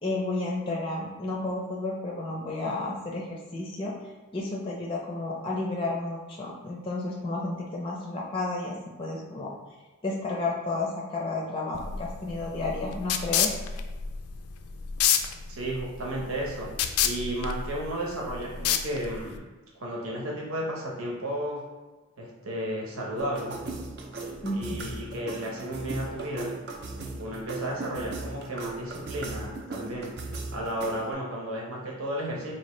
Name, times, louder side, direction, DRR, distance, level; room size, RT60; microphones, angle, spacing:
voice 1, 0.0-3.9 4.3-9.5 10.0-13.6 24.4-24.6, left 2 dB, 25° left, -2 dB, 0.4 m, -32 dB
sound 1, 11.7-19.4, left 8 dB, 85° left, 0.3 m, -29 dB
voice 2, 15.5-16.7 17.0-19.4 19.8-21.6 22.2-23.6 24.5-26.5 27.2-30.1 30.5-32.5, right 1 dB, 75° right, -3 dB, 1.0 m, -33 dB
sound 2, 23.2-31.1, right 2 dB, 50° right, 0.5 m, -38 dB
4.5 x 2.7 x 3.1 m, 1.2 s
head